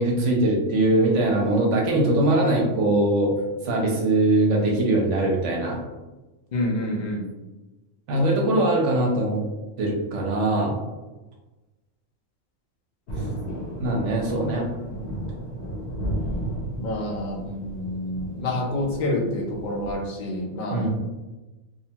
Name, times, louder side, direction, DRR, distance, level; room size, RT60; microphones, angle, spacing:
voice 1, 0.0-3.3 3.6-5.8 8.1-9.4 9.8-10.8 13.8-14.7 20.7-20.9, right 2 dB, 70° right, -1 dB, 0.9 m, -21 dB
voice 2, 6.5-7.2 16.7-20.9, left 1 dB, 80° left, -1 dB, 0.4 m, -28 dB
Thunder, 13.1-20.1, right 1 dB, 60° left, 0.9 m, -33 dB
2.7 x 2.1 x 2.7 m, 1.1 s
omnidirectional pair, 1.4 m